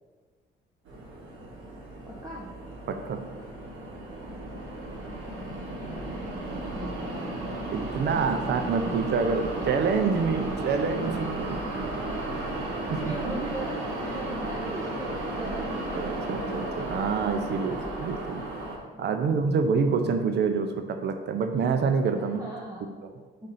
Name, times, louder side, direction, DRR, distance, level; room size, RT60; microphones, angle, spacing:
sound 1, 0.9-18.8, right 1 dB, 90° right, 1.4 m, -34 dB
voice 1, 2.0-2.5 5.4-6.3 6.7-7.4 8.1-8.9 9.3-9.9 10.5-10.7 11.0-11.4 11.9-12.0 12.7-15.7 17.4-17.9 18.9-19.7 22.2-23.0, right 1 dB, 20° right, -4 dB, 1.0 m, -40 dB
voice 2, 2.9-3.2 7.7-11.6 12.9-13.3 15.9-18.4 19.0-22.4, right 5 dB, 60° right, 6 dB, 0.6 m, -27 dB
5.2 x 3.8 x 5.8 m, 1.4 s
cardioid pair, 90°, 20 cm